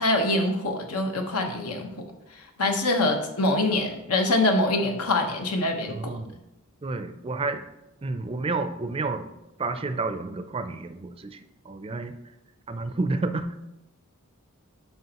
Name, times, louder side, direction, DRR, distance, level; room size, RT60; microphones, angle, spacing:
voice 1, 0.0-1.9 2.6-6.0, left 2 dB, 85° left, 4 dB, 1.1 m, -24 dB
voice 2, 5.9-6.4 6.8-7.6 8.0-9.3 9.6-12.2 12.7-13.5, right 3 dB, 25° right, 9 dB, 0.4 m, -30 dB
9.2 x 5.7 x 2.9 m, 0.91 s
head